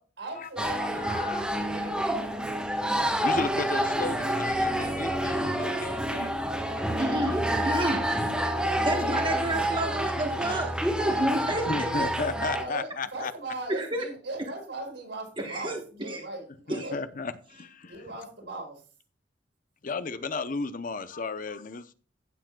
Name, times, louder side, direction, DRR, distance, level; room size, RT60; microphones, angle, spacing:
voice 1, 0.2-2.1 8.8-9.3 12.4-17.0 17.9-18.8, right 2 dB, 75° right, 4.9 m, -39 dB
Manado Jesus - Sulawesi Indonesia, 0.6-12.6, equal, 5° right, 1.4 m, -28 dB
voice 2, 0.8-1.4 3.2-6.4 7.1-7.6 8.7-9.2 11.6-13.3 16.7-17.9 19.8-21.9, left 4 dB, 45° left, 0.7 m, -34 dB
voice 3, 7.0-8.1 8.6-10.7 11.0-12.1 13.7-14.0 15.4-15.8 16.1-16.2 16.7-16.9, right 1 dB, 25° right, 1.2 m, -30 dB
15.0 x 7.4 x 2.3 m
head